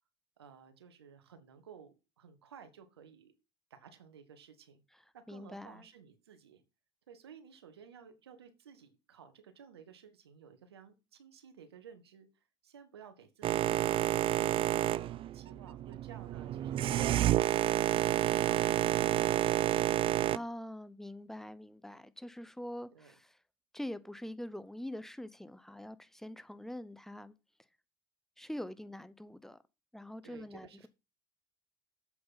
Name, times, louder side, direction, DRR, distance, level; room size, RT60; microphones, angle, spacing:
voice 1, 0.4-3.3 3.7-4.8 5.1-6.6 7.1-18.2 22.9-23.1 30.2-30.9, right 7 dB, 90° right, 1.5 m, -55 dB
voice 2, 4.9-5.8 20.3-23.4 23.7-27.3 28.4-29.6 29.9-30.9, left 1 dB, 5° left, 0.8 m, -44 dB
Boat Water vehicle, 13.4-20.4, right 13 dB, 45° right, 0.5 m, -29 dB
7.8 x 7.7 x 4.1 m
hypercardioid pair, 75°, 13 cm